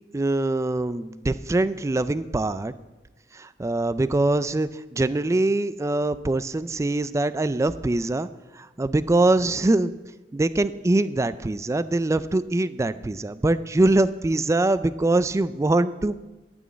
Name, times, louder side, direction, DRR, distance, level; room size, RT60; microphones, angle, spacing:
voice 1, 0.1-2.7 3.3-8.3 8.6-9.9 10.3-16.1, right 2 dB, 15° right, 15 dB, 0.3 m, -23 dB
12.5 x 6.3 x 8.4 m, 1.1 s
head